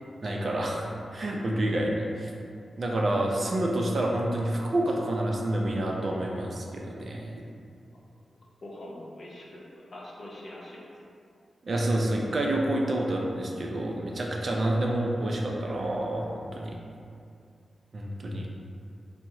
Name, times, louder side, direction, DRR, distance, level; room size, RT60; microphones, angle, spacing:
voice 1, 0.2-2.3 2.8-7.4 11.6-16.8 17.9-18.5, right 1 dB, 50° right, -1 dB, 0.4 m, -28 dB
voice 2, 8.6-10.9, left 1 dB, 55° left, -5 dB, 0.6 m, -43 dB
3.5 x 2.0 x 2.9 m, 2.4 s
wide cardioid pair, 90°, 0 cm